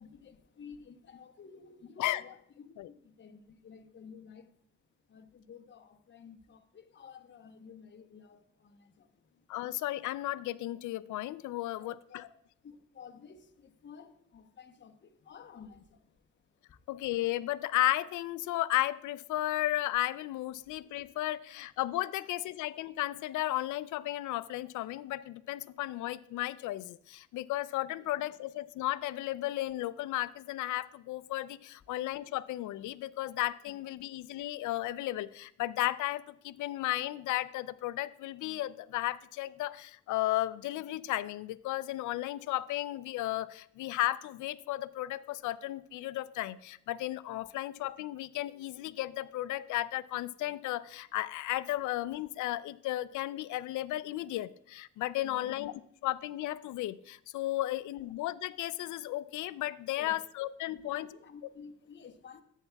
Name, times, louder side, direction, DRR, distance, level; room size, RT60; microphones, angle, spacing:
voice 1, 0.0-4.5 5.1-9.5 11.8-12.3 12.6-16.3 16.5-16.9 20.6-21.1 22.1-22.2 28.0-28.2 34.3-34.4 55.2-55.5 60.0-60.1 60.7-62.4, left 6 dB, 40° left, 0.9 m, -53 dB
voice 2, 9.5-12.2 16.9-61.1, left 15 dB, 75° left, 0.5 m, -34 dB
13.5 x 8.2 x 2.3 m
cardioid pair, 90°, 30 cm